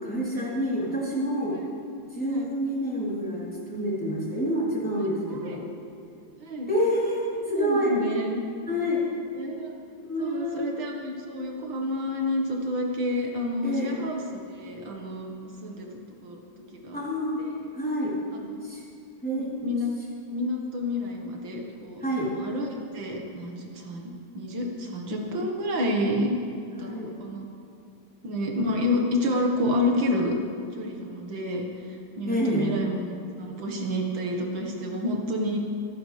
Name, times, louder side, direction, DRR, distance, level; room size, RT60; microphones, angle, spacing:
voice 1, 0.0-1.6 2.1-5.6 6.7-7.9 8.7-9.0 10.0-10.7 13.6-14.0 16.9-17.4 17.7-18.2 18.6-18.8 19.2-19.7 22.0-22.4 26.7-27.1 32.3-32.7, equal, 5° left, -7 dB, 3.3 m, -28 dB
voice 2, 5.3-5.6 6.4-6.7 7.4-8.4 9.3-9.7 10.2-15.3 15.6-15.9 16.2-16.4 16.8-17.0 17.4-17.6 18.3-18.4 19.4-19.9 20.3-22.7 22.9-26.3 26.8-26.9 27.2-27.5 28.2-30.4 30.7-33.0 33.4-35.6, left 1 dB, 90° right, 0 dB, 2.3 m, -29 dB
26.0 x 9.8 x 3.4 m, 2.6 s
omnidirectional pair, 2.0 m